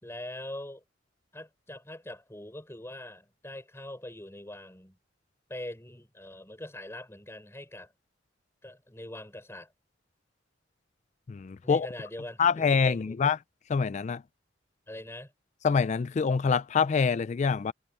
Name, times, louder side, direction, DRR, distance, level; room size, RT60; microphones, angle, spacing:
voice 1, 0.0-0.8 1.3-5.0 5.5-7.9 8.6-9.7 11.6-13.2 14.9-15.3, left 1 dB, 15° left, 5.4 m, -42 dB
voice 2, 11.3-11.9 12.4-13.4 13.7-14.2 15.6-17.7, left 5 dB, 40° left, 0.4 m, -25 dB
head